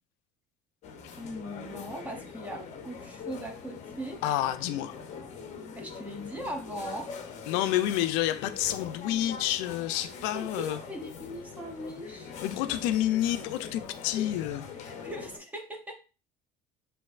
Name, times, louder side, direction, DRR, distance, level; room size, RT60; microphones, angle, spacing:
sound 1, 0.8-15.4, left 6 dB, 40° left, 0.7 m, -43 dB
voice 1, 1.2-4.2 5.7-7.3 10.3-12.3 14.8-15.9, equal, 10° right, 0.7 m, -39 dB
voice 2, 4.2-5.0 7.5-10.8 12.4-14.6, left 13 dB, 90° left, 0.4 m, -29 dB
6.3 x 2.6 x 2.4 m
cardioid pair, 155°, 18 cm